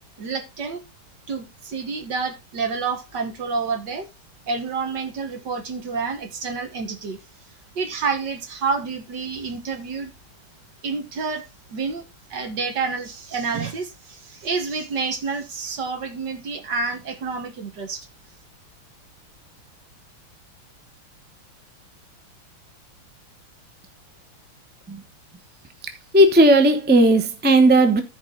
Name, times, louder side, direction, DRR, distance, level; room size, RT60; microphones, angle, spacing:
voice 1, 0.2-0.8 1.3-4.1 4.5-7.2 7.8-10.1 10.8-11.4 11.7-18.1, right 4 dB, 55° right, 2.0 m, -28 dB
voice 2, 26.1-28.0, right 1 dB, 10° right, 0.5 m, -15 dB
14.0 x 4.8 x 3.9 m
omnidirectional pair, 2.4 m